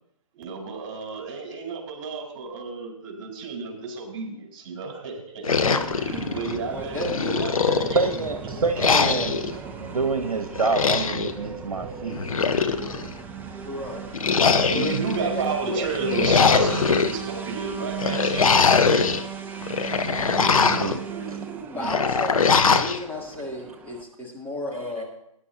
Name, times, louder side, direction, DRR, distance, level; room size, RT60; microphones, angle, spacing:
voice 1, 0.3-8.0 8.4-8.6 14.6-19.0, right 4 dB, 40° right, 0 dB, 4.2 m, -32 dB
sound 1, 5.4-6.6 7.0-8.2 8.8-9.5 10.6-11.3 12.1-13.1 14.1-15.2 15.9-17.1 18.0-19.2 19.6-21.0 21.8-23.0, left 5 dB, 70° left, 0.9 m, -22 dB
sound 2, 5.6-24.0, right 7 dB, 10° right, 0.7 m, -36 dB
voice 2, 6.7-7.4 7.7-7.8 13.6-14.2 14.7-15.8 21.2-21.4 21.7-25.0, left 1 dB, 10° left, -4 dB, 2.8 m, -33 dB
voice 3, 7.9-9.4 9.8-12.2 15.7-15.9 20.6-21.4 25.0-25.1, right 4 dB, 80° right, 6 dB, 1.1 m, -27 dB
19.5 x 10.5 x 2.8 m, 0.78 s
figure-of-eight pair, 130°, 18 cm